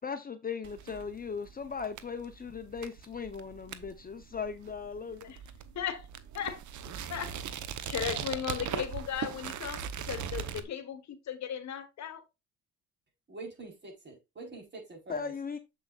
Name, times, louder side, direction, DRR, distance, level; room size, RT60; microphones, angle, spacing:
voice 1, 0.0-5.2 15.1-15.6, left 6 dB, 30° left, 0.8 m, -38 dB
sound 1, 0.6-10.6, right 8 dB, 75° right, 1.0 m, -40 dB
voice 2, 5.7-6.1 6.3-6.6 7.1-7.4 7.9-12.2, left 9 dB, 65° left, 1.4 m, -36 dB
voice 3, 13.3-15.3, right 3 dB, 35° right, 4.3 m, -45 dB
7.4 x 7.0 x 2.4 m
cardioid pair, 90°, 30 cm